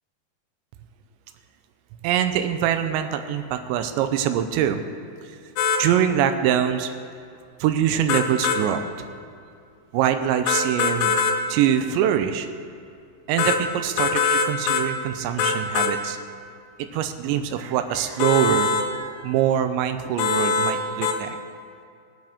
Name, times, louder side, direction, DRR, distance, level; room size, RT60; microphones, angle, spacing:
voice 1, 2.0-4.8 5.8-6.9 7.6-9.1 9.9-11.1 11.5-12.5 13.3-16.2 16.8-21.4, right 9 dB, 90° right, 8 dB, 3.0 m, -24 dB
sound 1, 5.6-5.8 8.1-8.6 10.5-11.4 13.4-13.6 14.0-14.9 15.4-15.9 18.2-18.9 20.2-20.8 21.0-21.2, left 5 dB, 90° left, 2.9 m, -22 dB
23.0 x 7.6 x 3.6 m, 2.4 s
omnidirectional pair, 5.1 m